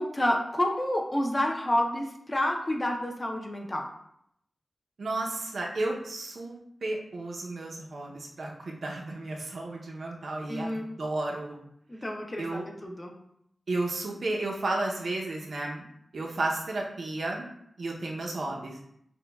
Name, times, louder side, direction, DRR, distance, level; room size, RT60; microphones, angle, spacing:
voice 1, 0.0-3.9 10.5-10.9 11.9-13.1, left 1 dB, 20° left, 1 dB, 0.5 m, -29 dB
voice 2, 5.0-11.6 12.4-12.6 13.7-15.8 16.1-17.5 17.8-18.8, right 2 dB, 65° right, -1 dB, 0.6 m, -33 dB
6.0 x 2.2 x 2.2 m, 0.73 s
wide cardioid pair, 135°, 0 cm